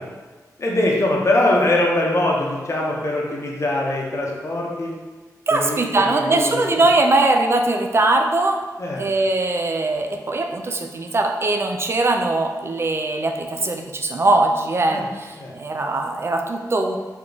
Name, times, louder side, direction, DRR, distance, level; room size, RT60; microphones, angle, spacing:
voice 1, 0.6-4.9 5.5-6.9 8.8-9.0 14.9-15.1 15.3-15.5, left 1 dB, 45° left, -2 dB, 0.8 m, -22 dB
voice 2, 5.5-8.6 9.0-17.0, right 2 dB, 40° right, 4 dB, 0.4 m, -21 dB
3.5 x 2.3 x 3.9 m, 1.3 s
wide cardioid pair, 85°, 7 cm